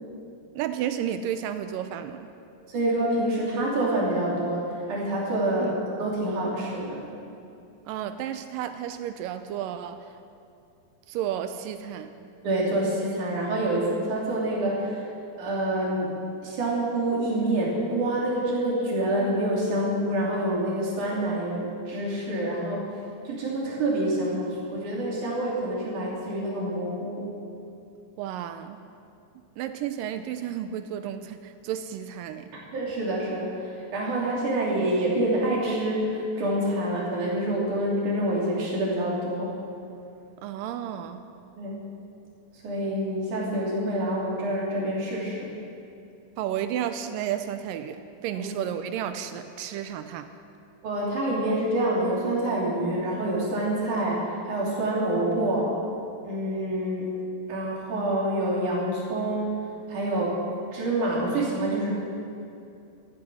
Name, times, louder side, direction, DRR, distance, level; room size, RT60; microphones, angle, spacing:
voice 1, 0.6-2.3 5.6-5.8 7.9-10.1 11.1-12.1 28.2-28.8 29.6-32.5 40.4-41.2 46.4-50.3, right 10 dB, 80° right, 9 dB, 2.1 m, -32 dB
voice 2, 2.7-7.0 12.4-15.1 15.4-16.1 16.4-22.9 23.2-27.3 32.7-39.6 41.6-41.8 42.6-45.5 48.3-48.4 50.8-55.7 56.2-57.1 57.5-59.5 59.9-60.4 60.7-61.9, right 1 dB, 55° right, -4 dB, 4.4 m, -27 dB
14.5 x 14.0 x 6.2 m, 2.6 s
omnidirectional pair, 4.2 m